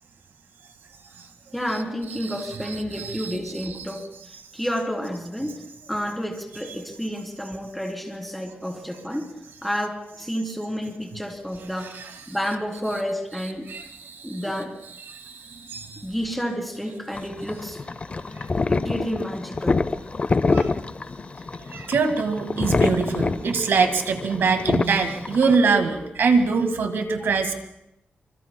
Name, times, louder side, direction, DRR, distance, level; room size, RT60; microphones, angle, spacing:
voice 1, 1.5-5.6 5.9-9.3 9.6-12.0 12.3-13.7 14.2-14.8 16.0-17.8 18.7-19.9, equal, ahead, 1 dB, 3.2 m, -30 dB
voice 2, 2.9-3.4 11.9-12.1 13.7-14.4 15.1-16.1 20.5-20.7 21.7-27.5, right 4 dB, 90° right, 7 dB, 1.7 m, -24 dB
sound 1, 17.2-25.6, left 3 dB, 35° left, 0.5 m, -26 dB
26.0 x 25.0 x 2.2 m, 0.83 s
wide cardioid pair, 100°, 4 cm